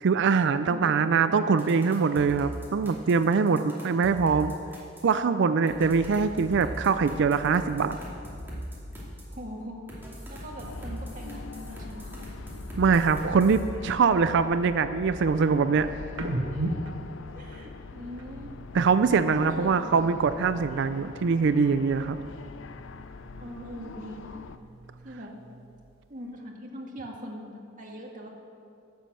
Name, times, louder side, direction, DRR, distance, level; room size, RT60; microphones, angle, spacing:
voice 1, 0.0-4.5 5.0-8.0 12.8-15.9 18.7-22.2, right 5 dB, 60° right, 11 dB, 0.4 m, -23 dB
voice 2, 0.7-1.0 9.3-10.0 10.3-12.3 16.6-16.7 17.3-18.6 19.3-20.0 23.4-24.4 25.0-25.3 26.1-28.3, equal, 40° right, -1 dB, 1.9 m, -41 dB
sound 1, 1.6-5.1 5.7-9.3 9.9-13.6, equal, 10° right, 2.7 m, -40 dB
sound 2, 10.6-24.6, left 4 dB, 65° left, 0.5 m, -43 dB
sound 3, 16.1-19.7 20.0-21.9 22.1-24.0 24.4-26.2, right 1 dB, 80° right, 1.2 m, -39 dB
12.0 x 7.2 x 7.5 m, 2.5 s
head